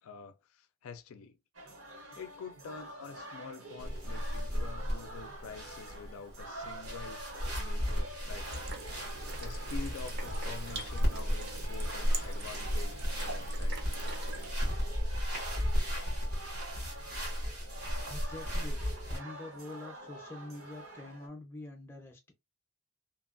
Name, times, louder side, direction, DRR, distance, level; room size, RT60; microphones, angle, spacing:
voice 1, 0.0-1.4 2.2-7.2 7.5-8.7 9.4-13.8, left 5 dB, 80° left, 0.3 m, -47 dB
sound 1, 1.5-21.3, right 1 dB, 65° right, 0.9 m, -47 dB
sound 2, 3.8-19.2, equal, 90° right, 1.5 m, -34 dB
sound 3, 8.4-14.5, right 3 dB, 45° right, 0.6 m, -44 dB
voice 2, 18.1-18.8 19.1-22.3, left 2 dB, 10° left, 0.5 m, -45 dB
2.8 x 2.3 x 2.4 m
head